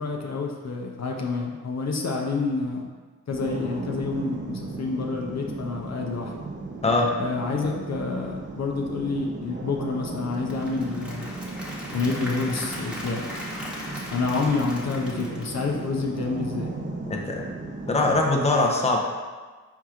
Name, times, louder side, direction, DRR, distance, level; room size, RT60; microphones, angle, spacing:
voice 1, 0.0-2.9 3.3-6.3 7.2-11.4 11.9-13.2 14.1-16.7, left 4 dB, 60° left, 0 dB, 0.7 m, -28 dB
sound 1, 3.3-18.3, right 2 dB, 40° right, 0.7 m, -36 dB
Applause / Crowd, 10.2-16.2, left 1 dB, 5° right, 1.1 m, -39 dB
voice 2, 17.1-17.4 17.9-19.0, left 2 dB, 20° left, 0 dB, 0.7 m, -22 dB
4.6 x 4.3 x 2.4 m, 1.4 s
cardioid pair, 45°, 31 cm